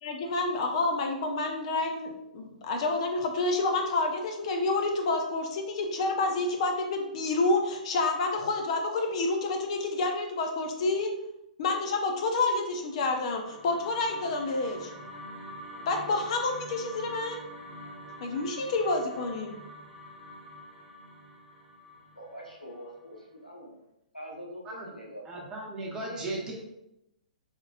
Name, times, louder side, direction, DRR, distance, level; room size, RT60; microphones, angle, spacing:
voice 1, 0.0-11.1 11.6-14.9 15.9-17.4 18.2-19.6, left 3 dB, 45° left, 3 dB, 0.6 m, -29 dB
sound 1, 12.9-23.2, equal, 10° left, 1.1 m, -45 dB
voice 2, 21.9-23.7 24.1-25.2 26.0-26.6, equal, 90° left, -1 dB, 1.0 m, -44 dB
voice 3, 25.2-26.6, right 2 dB, 15° right, -3 dB, 1.0 m, -36 dB
4.0 x 3.6 x 2.4 m, 0.86 s
figure-of-eight pair, 120°, 4 cm